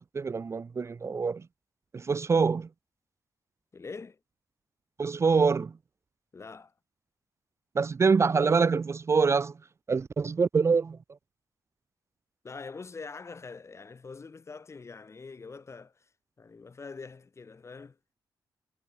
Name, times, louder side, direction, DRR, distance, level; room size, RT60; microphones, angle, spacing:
voice 1, 0.1-1.4 1.9-2.7 5.0-5.7 7.7-9.5 9.9-11.0, right 5 dB, 40° right, 0.7 m, -25 dB
voice 2, 3.7-4.2 6.3-6.7 12.4-16.1 16.4-18.0, left 4 dB, 40° left, 3.1 m, -44 dB
cardioid pair, 85°, 8 cm